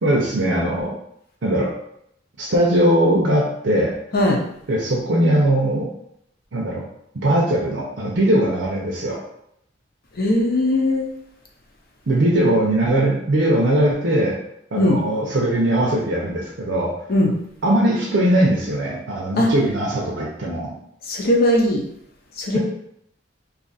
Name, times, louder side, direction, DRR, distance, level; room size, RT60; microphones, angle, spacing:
voice 1, 0.0-1.0 1.4-1.7 2.4-3.9 4.7-5.9 6.5-6.8 7.1-9.2 12.1-14.4 14.7-16.9 17.6-20.7, right 1 dB, 90° right, -4 dB, 0.7 m, -20 dB
voice 2, 10.2-11.1 14.8-15.0 17.1-17.3 19.4-19.5 21.1-21.8 22.4-22.6, left 1 dB, 55° left, 0 dB, 0.7 m, -18 dB
2.7 x 2.5 x 4.0 m, 0.75 s
head